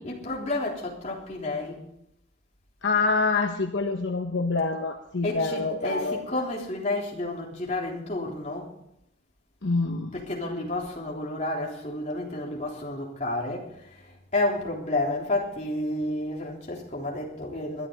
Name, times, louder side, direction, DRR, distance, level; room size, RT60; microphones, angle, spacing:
voice 1, 0.0-1.8 5.2-8.7 10.1-13.7 14.3-17.9, left 2 dB, 35° left, -2 dB, 3.5 m, -30 dB
voice 2, 2.8-6.4 9.6-10.1, left 3 dB, 70° left, 5 dB, 1.0 m, -26 dB
21.5 x 11.0 x 4.0 m, 0.78 s
head